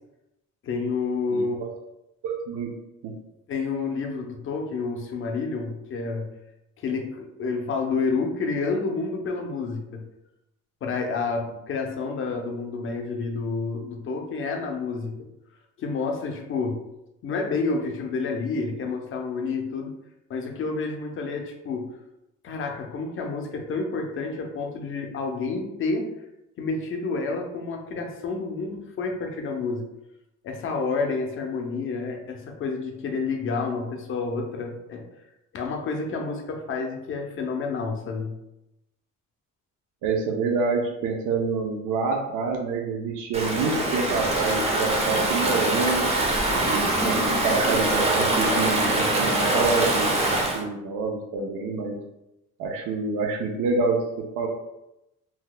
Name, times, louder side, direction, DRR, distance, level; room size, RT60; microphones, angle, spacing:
voice 1, 0.6-1.6 3.5-6.3 6.8-10.0 10.8-15.2 15.8-16.8 17.2-19.9 20.3-21.9 22.4-26.1 26.6-29.8 30.4-35.0 35.5-38.4, left 4 dB, 40° left, 2 dB, 0.5 m, -29 dB
voice 2, 1.3-1.7 2.2-2.8 3.0-3.2 40.0-46.1 46.6-52.0 52.6-54.5, right 4 dB, 80° right, 2 dB, 0.5 m, -27 dB
Stream / Ocean, 43.3-50.6, right 2 dB, 20° right, 0.4 m, -23 dB
2.8 x 2.1 x 3.8 m, 0.89 s
cardioid pair, 180°, 31 cm